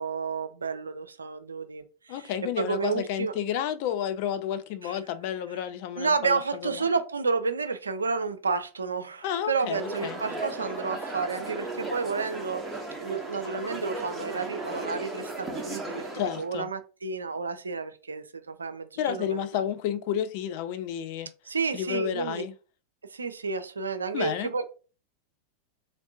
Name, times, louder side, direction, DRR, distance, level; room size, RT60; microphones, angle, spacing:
voice 1, 0.0-2.3 2.6-3.3 4.8-5.0 6.0-12.6 13.0-16.1 16.4-19.6 21.5-22.4 23.1-24.6, right 4 dB, 75° right, 0.3 m, -31 dB
voice 2, 2.1-6.8 9.2-10.2 16.1-16.7 19.0-21.3 21.7-22.5 24.1-24.5, left 10 dB, 45° left, 0.3 m, -31 dB
sound 1, 9.7-16.5, right 2 dB, 10° right, 0.7 m, -36 dB
3.1 x 2.6 x 2.6 m
figure-of-eight pair, 90°, 0 cm